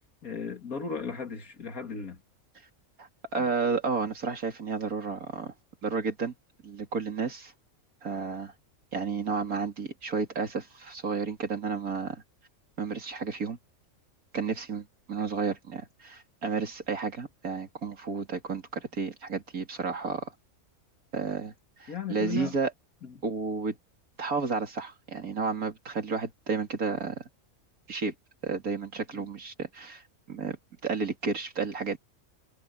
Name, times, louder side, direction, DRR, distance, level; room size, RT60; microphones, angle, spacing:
voice 1, 0.2-2.2 3.4-3.5 21.9-22.6 23.0-23.1 29.1-29.3, left 6 dB, 80° left, 2.7 m, -36 dB
voice 2, 3.0-5.5 5.8-6.3 6.6-7.5 8.0-8.5 8.9-12.2 12.8-13.6 14.3-20.3 21.1-21.5 21.8-22.7 23.2-23.8 24.2-27.2 27.9-28.1 28.4-32.0, right 4 dB, 85° right, 3.1 m, -32 dB
omnidirectional pair, 1.5 m